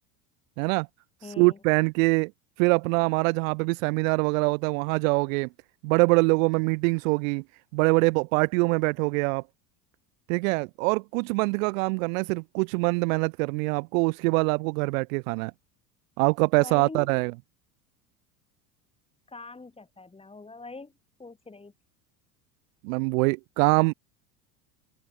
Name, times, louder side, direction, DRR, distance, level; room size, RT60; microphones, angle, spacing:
voice 1, 0.6-0.9 1.4-2.3 2.6-5.5 5.8-7.4 7.7-9.4 10.3-15.5 16.2-17.3 22.8-23.9, right 29 dB, 60° right, 0.9 m, -24 dB
voice 2, 1.2-1.6 16.5-17.1 19.3-20.9 21.2-21.7, left 3 dB, 10° left, 2.9 m, -43 dB
open air
hypercardioid pair, 80°, 45 cm